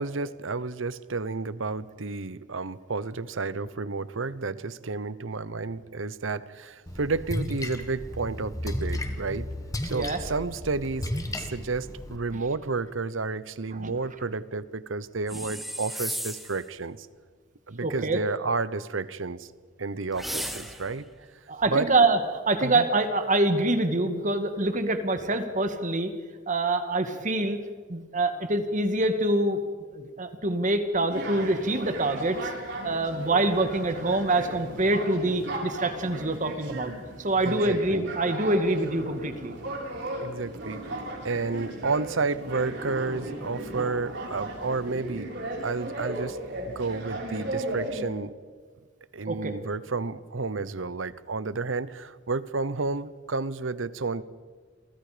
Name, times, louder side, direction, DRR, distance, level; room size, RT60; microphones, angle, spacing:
voice 1, 0.0-9.5 9.8-11.1 11.4-17.1 17.7-19.5 19.8-21.1 21.7-21.9 22.6-22.8 37.4-38.0 40.2-41.0 41.2-45.3 45.6-46.4 46.6-48.3 49.1-54.2, right 3 dB, 80° right, 17 dB, 0.9 m, -31 dB
Splash splatter, 6.9-12.2, left 1 dB, 20° left, 1.8 m, -34 dB
voice 2, 9.9-10.2 13.7-13.9 17.8-18.2 21.5-22.2 22.5-26.1 26.5-27.6 27.9-29.6 29.9-32.5 32.8-36.9 37.2-39.5 49.3-49.5, right 2 dB, 40° right, 8 dB, 1.9 m, -25 dB
sound 1, 15.3-16.6 20.1-21.0, equal, ahead, 1.8 m, -35 dB
sound 2, 31.1-48.0, right 1 dB, 65° right, 7.5 m, -36 dB
29.5 x 23.5 x 5.1 m, 1.5 s
head